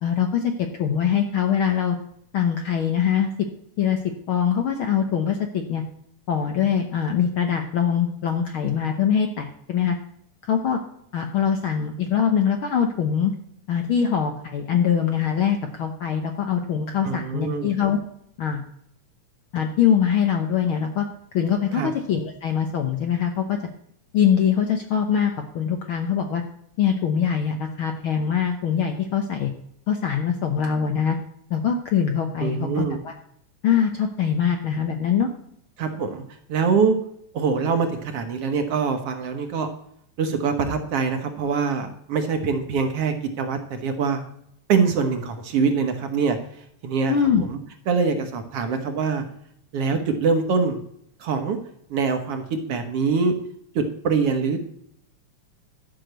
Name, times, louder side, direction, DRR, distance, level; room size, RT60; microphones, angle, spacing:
voice 1, 0.0-0.5 0.8-2.0 2.3-3.3 3.8-4.0 4.3-5.8 6.3-9.9 10.4-10.8 11.1-13.3 13.7-18.0 18.4-18.6 19.5-21.1 21.3-23.6 24.1-26.4 26.8-29.5 29.9-31.2 31.5-33.1 33.6-35.3 47.1-47.4, left 8 dB, 65° left, 5 dB, 1.3 m, -23 dB
voice 2, 17.0-17.7 21.7-21.9 32.4-33.0 35.8-36.2 36.5-37.0 37.3-39.7 40.2-44.2 44.7-47.6 47.9-49.2 49.7-50.8 51.2-51.6 51.9-53.3 53.8-54.6, right 5 dB, 60° right, 6 dB, 1.9 m, -24 dB
11.5 x 6.0 x 7.9 m, 0.71 s
omnidirectional pair, 3.3 m